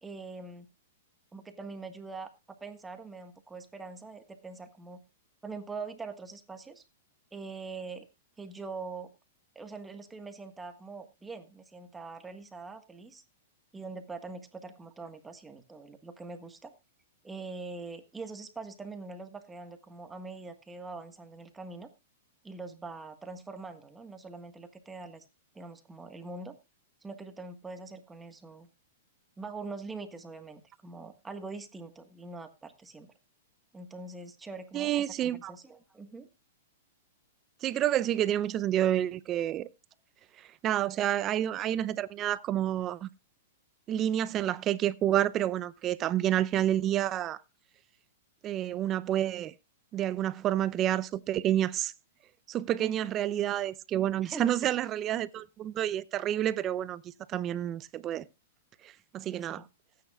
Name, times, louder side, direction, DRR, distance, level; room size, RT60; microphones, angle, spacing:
voice 1, 0.0-0.7 1.3-2.3 2.6-5.0 5.4-6.8 7.3-8.1 8.4-9.1 9.5-13.2 13.7-16.7 17.2-21.9 22.4-25.2 25.5-26.5 27.0-28.7 29.4-33.1 33.7-36.3 52.8-53.1 54.2-54.7 59.3-59.7, right 3 dB, 10° right, 1.5 m, -43 dB
voice 2, 34.7-35.5 37.6-39.7 40.4-43.1 43.9-47.4 48.4-49.5 49.9-51.9 52.5-57.0 57.3-58.3 58.8-59.6, right 12 dB, 30° right, 0.7 m, -29 dB
18.5 x 9.4 x 2.4 m
hypercardioid pair, 125°, 0 cm